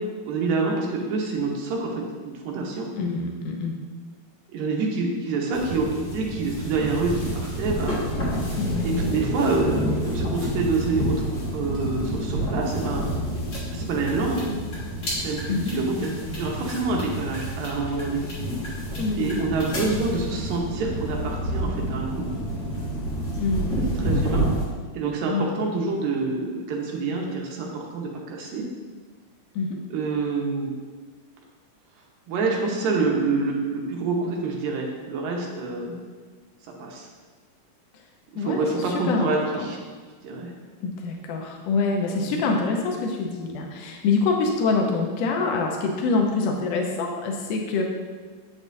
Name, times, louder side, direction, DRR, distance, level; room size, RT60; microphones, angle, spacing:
voice 1, 0.3-2.9 4.5-8.0 8.8-13.0 13.7-14.5 15.2-16.1 16.3-18.2 19.2-22.3 24.0-24.5 24.9-28.7 29.9-30.7 32.3-35.9 36.8-37.1 38.3-39.8 40.2-40.5 42.2-42.4, right 3 dB, 80° right, -1 dB, 2.6 m, -27 dB
voice 2, 3.0-3.7 8.6-8.8 15.5-15.7 19.0-19.6 23.4-23.8 25.3-25.5 29.5-29.8 38.4-39.3 39.5-39.7 40.8-47.8, left 4 dB, 85° left, 1 dB, 1.5 m, -25 dB
sound 1, 5.5-24.6, equal, 40° left, 1.9 m, -29 dB
8.2 x 7.2 x 2.7 m, 1.5 s
omnidirectional pair, 4.0 m